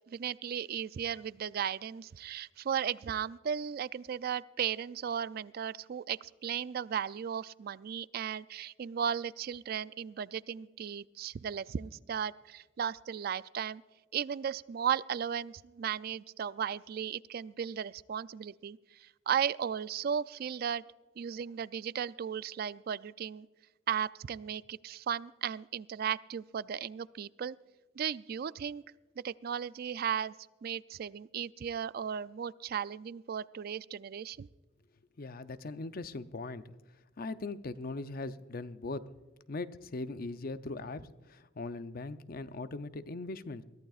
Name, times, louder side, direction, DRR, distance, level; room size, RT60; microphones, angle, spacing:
voice 1, 0.1-13.8 14.1-20.8 21.2-23.5 23.9-27.6 28.0-28.8 29.2-30.3 30.6-34.5, right 8 dB, 50° right, 18 dB, 0.3 m, -36 dB
voice 2, 35.2-36.7 37.2-39.1 39.5-43.6, left 3 dB, 45° left, 12 dB, 0.6 m, -40 dB
22.5 x 14.5 x 2.4 m, 1.2 s
head